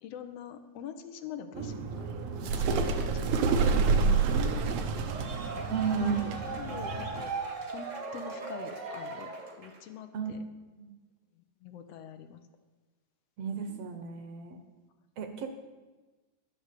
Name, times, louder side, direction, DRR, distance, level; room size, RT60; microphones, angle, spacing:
voice 1, 0.0-4.8 5.5-9.3 9.6-10.4 11.6-12.4 13.5-14.0, left 8 dB, 75° left, 8 dB, 1.6 m, -44 dB
sound 1, 1.5-7.2, right 5 dB, 90° right, 2.4 m, -29 dB
sound 2, 4.9-9.9, right 3 dB, 40° right, 1.1 m, -39 dB
voice 2, 5.7-6.4 10.1-10.4 10.7-10.9 13.4-14.6 15.2-15.5, right 6 dB, 65° right, 7 dB, 1.7 m, -32 dB
11.5 x 6.6 x 8.2 m, 1.2 s
omnidirectional pair, 3.3 m